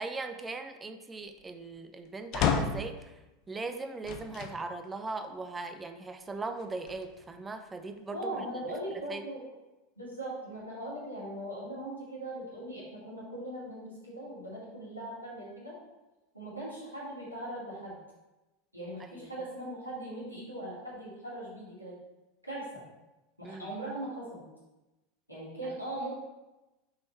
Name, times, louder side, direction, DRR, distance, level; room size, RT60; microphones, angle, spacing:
voice 1, 0.0-3.1 3.5-8.4 9.1-9.2 19.0-19.3 23.4-23.7, right 3 dB, 15° right, 8 dB, 0.5 m, -39 dB
sound 1, 2.3-3.0 4.0-4.6 5.2-5.3 6.6-7.4, left 6 dB, 45° left, 0.6 m, -31 dB
voice 2, 8.1-9.5 10.0-15.7 16.3-17.9 18.7-21.9 22.4-22.8 23.4-24.4 25.3-26.1, right 1 dB, 90° left, -7 dB, 2.4 m, -40 dB
5.6 x 5.6 x 4.2 m, 1.0 s
figure-of-eight pair, 80°, 0 cm